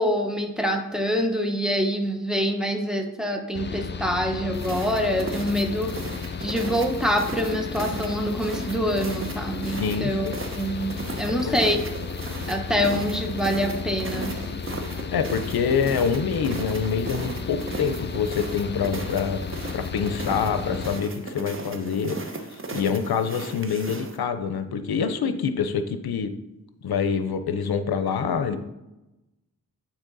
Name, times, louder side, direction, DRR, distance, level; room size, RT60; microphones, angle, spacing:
voice 1, 0.0-5.9 6.4-11.8 12.5-14.8, equal, ahead, 2 dB, 0.9 m, -26 dB
Mechanical fan, 3.5-21.0, left 6 dB, 30° left, 0.4 m, -34 dB
sound 1, 4.5-24.2, right 2 dB, 35° right, 0.9 m, -36 dB
voice 2, 9.7-10.4 10.7-10.8 11.4-11.8 15.1-19.4 19.7-22.4 22.7-26.3 26.8-28.6, left 6 dB, 85° left, 9 dB, 0.6 m, -26 dB
8.9 x 4.2 x 4.0 m, 0.96 s
wide cardioid pair, 75°, 36 cm